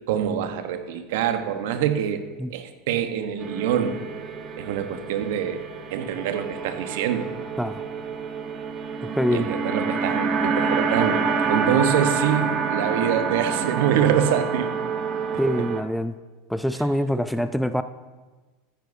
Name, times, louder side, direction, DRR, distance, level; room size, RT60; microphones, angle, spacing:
voice 1, 0.1-2.2 2.5-4.0 4.6-5.6 5.9-7.3 9.3-11.2 11.5-14.7 15.3-15.4, right 9 dB, 70° right, 8 dB, 1.0 m, -25 dB
sound 1, 3.4-15.8, right 5 dB, 35° right, 1.1 m, -27 dB
voice 2, 9.0-9.5 15.4-16.2 16.5-17.8, equal, ahead, 11 dB, 0.4 m, -24 dB
14.0 x 10.0 x 2.7 m, 1.3 s
hypercardioid pair, 95°, 0 cm